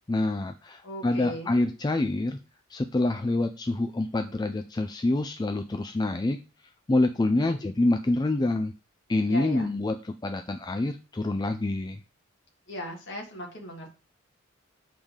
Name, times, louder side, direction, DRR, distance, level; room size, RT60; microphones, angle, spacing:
voice 1, 0.1-2.4 2.7-6.4 6.9-8.7 9.1-12.0, left 2 dB, 20° left, 6 dB, 0.3 m, -26 dB
voice 2, 0.8-1.6 7.3-7.6 9.3-9.7 12.7-13.9, left 1 dB, 55° left, 0 dB, 2.0 m, -38 dB
7.2 x 4.9 x 3.7 m, 0.34 s
head